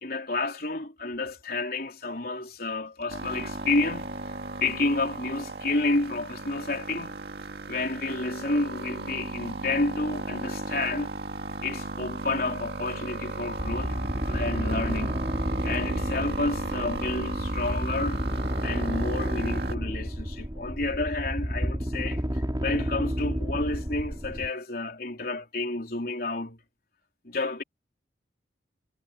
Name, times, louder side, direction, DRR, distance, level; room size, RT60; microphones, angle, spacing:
voice 1, 0.0-4.4 4.6-7.2 7.7-11.1 11.6-15.2 15.6-18.2 18.6-26.6 27.2-27.6, left 2 dB, 55° left, 3.9 m, -30 dB
sound 1, 3.1-19.7, right 2 dB, 60° right, 2.2 m, -35 dB
sound 2, 13.6-24.5, equal, 20° right, 3.2 m, -31 dB
head